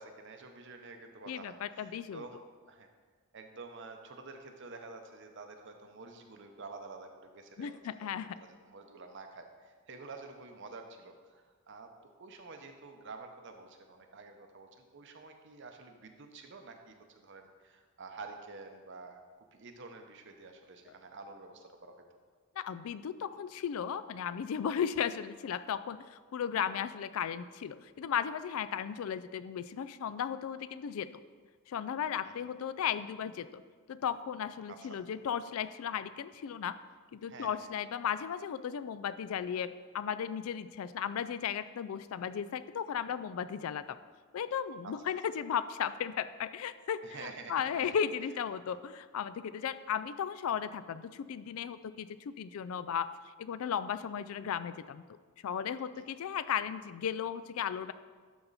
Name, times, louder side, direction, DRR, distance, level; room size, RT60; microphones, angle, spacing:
voice 1, 0.0-2.9 3.3-11.9 12.2-19.2 19.5-22.0 32.2-32.3 34.7-35.0 37.3-37.7 44.8-44.9 47.0-47.9 48.7-48.8 56.0-56.1, right 3 dB, 55° right, 5 dB, 0.8 m, -49 dB
voice 2, 1.3-2.2 7.6-8.4 22.6-31.1 31.7-33.6 33.9-36.8 37.1-44.0 44.3-53.1 53.4-55.0 55.4-57.9, left 8 dB, 70° left, 14 dB, 0.3 m, -35 dB
12.0 x 4.3 x 4.1 m, 1.5 s
head